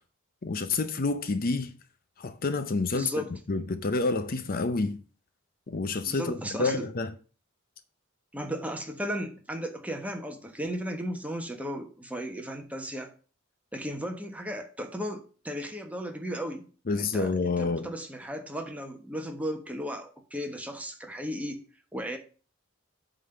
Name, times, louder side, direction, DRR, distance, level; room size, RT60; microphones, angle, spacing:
voice 1, 0.4-1.7 2.2-5.0 5.7-7.1 16.9-17.9, left 3 dB, 45° left, 0.6 m, -29 dB
voice 2, 2.9-3.3 6.1-6.9 8.3-13.1 13.7-16.7 16.9-21.6 21.9-22.2, equal, 5° right, 1.2 m, -35 dB
8.3 x 3.9 x 6.8 m
head